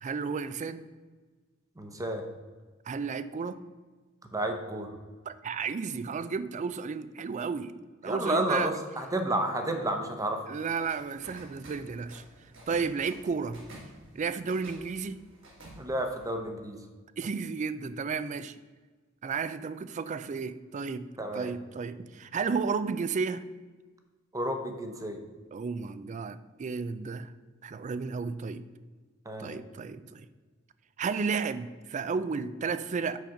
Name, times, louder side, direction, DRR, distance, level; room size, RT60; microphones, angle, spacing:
voice 1, 0.0-0.8 2.9-3.6 5.3-7.7 8.0-8.7 10.5-12.2 12.7-13.6 14.1-15.2 17.2-18.5 19.2-21.1 21.3-23.4 25.5-27.3 27.6-28.6 29.4-30.3 31.0-33.2, right 5 dB, 35° right, 14 dB, 0.3 m, -33 dB
voice 2, 1.8-2.2 4.3-4.9 8.0-10.5 15.8-16.8 21.2-21.5 24.3-25.2 29.3-29.5, right 1 dB, 15° right, 5 dB, 0.8 m, -31 dB
sound 1, 10.8-16.3, right 1 dB, 65° right, 2.0 m, -51 dB
6.2 x 5.0 x 5.8 m, 1.4 s
head